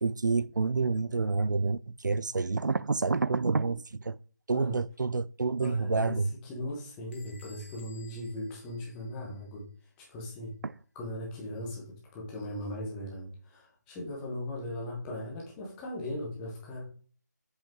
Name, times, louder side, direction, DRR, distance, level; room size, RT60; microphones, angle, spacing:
voice 1, 0.0-4.2 4.5-6.3 10.6-10.7, right 4 dB, 80° right, 0.4 m, -28 dB
voice 2, 5.6-6.2 6.4-9.7 10.0-10.5 10.9-16.8, left 1 dB, 5° left, 1.0 m, -38 dB
Bell / Door, 7.1-9.6, left 4 dB, 40° left, 1.8 m, -57 dB
7.8 x 5.3 x 3.7 m
figure-of-eight pair, 175°, 10 cm